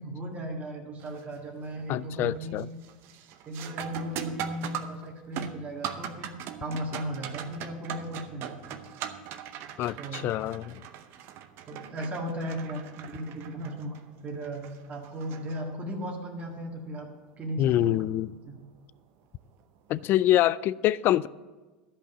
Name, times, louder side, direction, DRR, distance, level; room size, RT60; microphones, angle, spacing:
voice 1, 0.0-2.6 3.5-8.6 10.0-10.2 11.7-14.0 14.2-17.1 17.4-18.0 18.4-18.6, equal, 30° right, 0 dB, 1.8 m, -36 dB
sound 1, 1.0-1.4 1.8-2.2 2.6-16.1 18.6-18.7 19.5-19.8, right 10 dB, 50° right, 0.8 m, -40 dB
voice 2, 1.9-2.7 9.8-10.8 17.6-18.3 19.9-21.3, left 13 dB, 45° left, 22 dB, 0.3 m, -25 dB
12.0 x 5.4 x 7.0 m, 1.3 s
hypercardioid pair, 85°, 5 cm